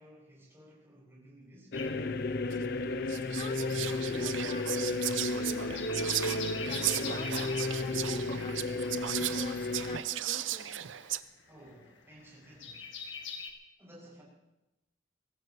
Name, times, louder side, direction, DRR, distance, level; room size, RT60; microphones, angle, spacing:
voice 1, 0.0-1.8 11.4-13.0 13.8-14.2, equal, 15° right, -5 dB, 6.6 m, -55 dB
sound 1, 1.7-3.1 3.4-13.5, left 6 dB, 75° left, 1.9 m, -44 dB
sound 2, 1.7-10.0, left 2 dB, 55° left, 0.6 m, -33 dB
Whispering, 2.5-2.6 3.1-11.2, right 12 dB, 85° right, 0.6 m, -36 dB
voice 2, 2.9-10.8, left 2 dB, 30° left, 9 dB, 0.8 m, -48 dB
24.0 x 16.0 x 3.1 m, 0.95 s
head